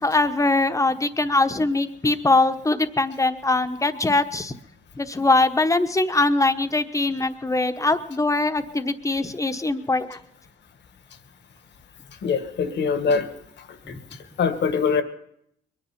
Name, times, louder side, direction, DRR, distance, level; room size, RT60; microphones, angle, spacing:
voice 1, 0.0-4.5 4.9-10.2 13.9-14.0, left 2 dB, 15° left, 8 dB, 1.1 m, -22 dB
voice 2, 12.2-13.3 14.4-15.0, left 5 dB, 60° left, 9 dB, 1.6 m, -22 dB
22.0 x 10.0 x 5.8 m, 0.73 s
cardioid pair, 90°, 20 cm